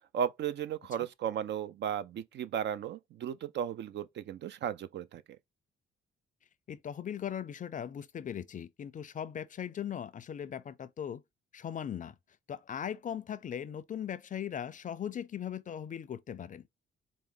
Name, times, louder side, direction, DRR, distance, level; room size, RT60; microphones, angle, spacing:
voice 1, 0.1-5.2, right 9 dB, 60° right, 0.4 m, -35 dB
voice 2, 6.7-11.2 11.5-12.2 12.5-16.7, left 9 dB, 40° left, 0.5 m, -39 dB
4.5 x 2.1 x 3.7 m
cardioid pair, 90°, 20 cm